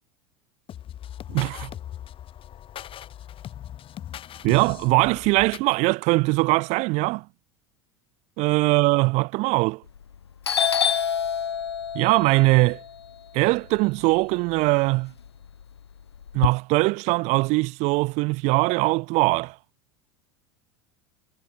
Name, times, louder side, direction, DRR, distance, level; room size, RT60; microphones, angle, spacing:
sound 1, 0.7-5.8, left 11 dB, 40° left, 5.6 m, -39 dB
voice 1, 1.3-1.7 4.4-7.2 8.4-9.8 11.9-12.8 13.3-15.1 16.3-19.5, right 24 dB, 60° right, 3.0 m, -21 dB
Doorbell, 9.9-10.2 10.4-14.6 15.0-16.5, left 7 dB, 90° left, 2.3 m, -27 dB
hypercardioid pair, 80°, 13 cm